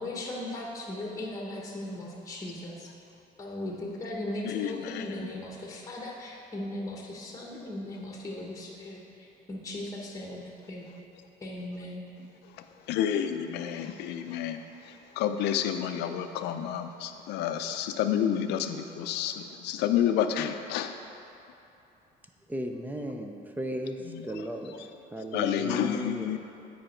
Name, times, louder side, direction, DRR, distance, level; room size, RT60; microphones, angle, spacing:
voice 1, 0.0-2.9 3.4-10.8 11.4-12.1, left 1 dB, 20° left, -2 dB, 1.2 m, -38 dB
voice 2, 4.4-5.3 12.9-14.6 15.2-20.9 25.3-26.4, left 9 dB, 85° left, 8 dB, 0.5 m, -29 dB
voice 3, 22.5-24.0 24.2-24.7 25.1-26.3, right 1 dB, 10° right, 4 dB, 0.6 m, -35 dB
8.9 x 5.2 x 4.4 m, 2.8 s
cardioid pair, 110°, 17 cm